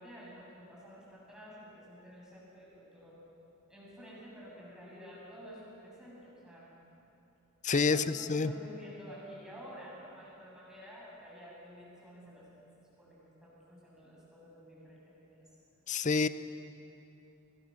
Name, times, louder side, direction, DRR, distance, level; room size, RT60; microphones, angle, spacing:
voice 1, 0.0-3.2 3.7-6.7 7.9-12.6 13.0-15.4, equal, 5° right, -7 dB, 7.4 m, -50 dB
voice 2, 7.6-8.5 15.9-16.3, left 4 dB, 35° left, 14 dB, 0.6 m, -28 dB
25.5 x 21.0 x 6.5 m, 2.9 s
head